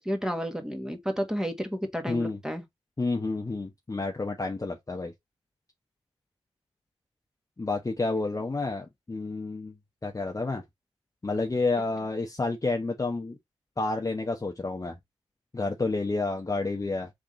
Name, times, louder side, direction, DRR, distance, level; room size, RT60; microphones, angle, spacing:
voice 1, 0.0-2.6, equal, 5° right, 1.4 m, -31 dB
voice 2, 2.1-2.4 3.0-5.1 7.6-9.7 10.0-10.6 11.2-13.4 13.8-15.0 15.5-17.1, left 3 dB, 30° left, 0.8 m, -30 dB
3.6 x 3.5 x 3.8 m
cardioid pair, 45°, 11 cm